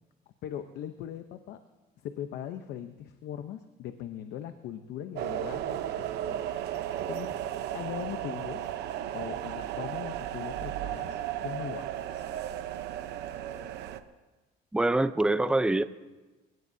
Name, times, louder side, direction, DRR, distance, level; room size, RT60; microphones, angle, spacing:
voice 1, 0.4-1.6 2.0-7.3 7.7-8.7 9.1-12.2, left 10 dB, 75° left, 8 dB, 0.9 m, -40 dB
sound 1, 5.2-14.0, right 11 dB, 80° right, 0.9 m, -35 dB
voice 2, 14.7-15.8, right 2 dB, 5° right, 12 dB, 0.6 m, -24 dB
29.0 x 17.0 x 2.8 m, 1.2 s
cardioid pair, 110°, 17 cm